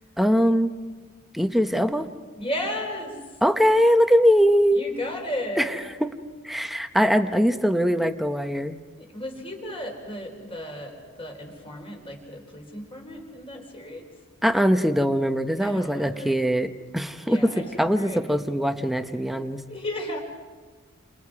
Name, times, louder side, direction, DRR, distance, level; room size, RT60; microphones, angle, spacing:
voice 1, 0.2-0.7 1.3-2.1 3.4-4.8 5.6-5.7 6.0-6.1 6.4-8.8 14.4-17.5 17.8-19.6, equal, ahead, 7 dB, 0.9 m, -21 dB
voice 2, 2.4-3.2 4.7-5.8 9.0-14.0 15.6-16.4 17.3-18.2 19.7-20.2, left 1 dB, 25° left, 2 dB, 4.1 m, -34 dB
30.0 x 27.5 x 4.8 m, 1.4 s
head